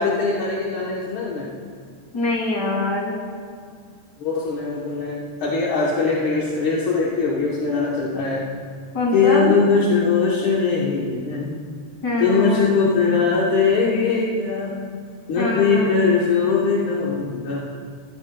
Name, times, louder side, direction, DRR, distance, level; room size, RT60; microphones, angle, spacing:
voice 1, 0.0-1.5 4.2-8.4 9.1-11.6 12.2-14.7 15.3-17.6, left 4 dB, 60° left, -5 dB, 1.4 m, -21 dB
voice 2, 2.1-3.2 8.9-9.5 12.0-12.7 15.4-15.9, left 2 dB, 35° left, -2 dB, 2.5 m, -23 dB
15.0 x 13.0 x 2.2 m, 2.1 s
omnidirectional pair, 3.3 m